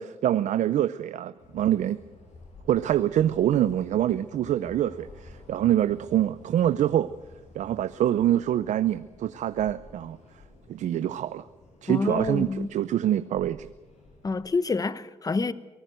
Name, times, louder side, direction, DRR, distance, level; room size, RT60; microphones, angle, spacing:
voice 1, 0.0-2.0 2.7-7.1 7.5-10.2 10.7-11.5 11.8-13.7, right 11 dB, 85° right, 0.6 m, -25 dB
sound 1, 1.4-14.4, left 2 dB, 75° left, 6.7 m, -51 dB
voice 2, 11.9-12.7 14.2-15.5, left 4 dB, 30° left, 1.0 m, -27 dB
23.5 x 18.5 x 7.8 m
cardioid pair, 100°, 12 cm